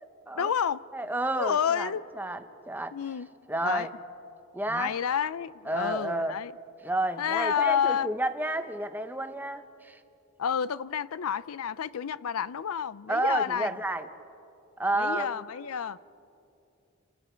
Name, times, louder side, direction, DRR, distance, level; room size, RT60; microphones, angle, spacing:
voice 1, 0.4-0.8 1.4-2.0 2.9-3.3 3.6-3.9 4.7-6.5 7.2-8.1 10.4-13.7 15.0-16.0, left 8 dB, 80° left, 0.5 m, -29 dB
voice 2, 0.9-3.0 3.5-3.9 4.5-5.0 5.6-6.4 6.8-10.0 13.1-14.1 14.8-15.4, right 2 dB, 10° right, 0.8 m, -31 dB
30.0 x 27.0 x 4.5 m
head